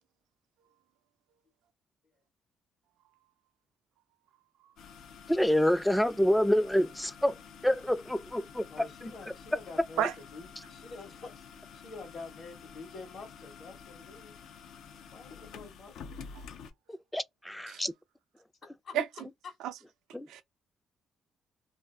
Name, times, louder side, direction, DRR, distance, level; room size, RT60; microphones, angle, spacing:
sound 1, 4.8-16.7, left 6 dB, 80° left, 0.5 m, -49 dB
voice 1, 5.3-7.4 7.6-8.6 17.1-17.9 20.1-20.4, equal, 5° left, 0.3 m, -27 dB
voice 2, 8.7-11.4 11.7-14.3 15.1-16.2 18.8-18.9 19.4-19.6, left 3 dB, 60° left, 1.1 m, -47 dB
voice 3, 10.0-10.1 16.4-16.5 17.7-17.8 18.9-19.0 19.6-19.7 20.3-20.4, right 10 dB, 90° right, 0.4 m, -30 dB
2.6 x 2.4 x 3.3 m
cardioid pair, 90°, 0 cm